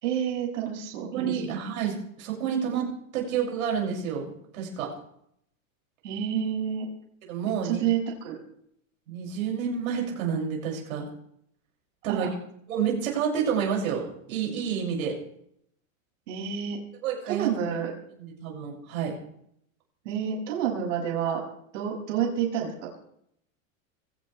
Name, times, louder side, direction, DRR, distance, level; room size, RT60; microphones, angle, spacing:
voice 1, 0.0-1.6 6.0-6.9 7.6-8.4 12.1-12.3 16.3-16.8 17.3-17.9 20.1-21.4 21.7-23.0, right 8 dB, 60° right, -1 dB, 7.0 m, -29 dB
voice 2, 1.1-2.9 3.1-4.9 7.3-7.8 9.1-11.1 12.0-12.3 12.7-15.2 17.0-17.5 18.2-19.2, right 7 dB, 80° right, -1 dB, 6.8 m, -29 dB
22.5 x 18.0 x 3.4 m, 0.71 s
supercardioid pair, 180°, 41 cm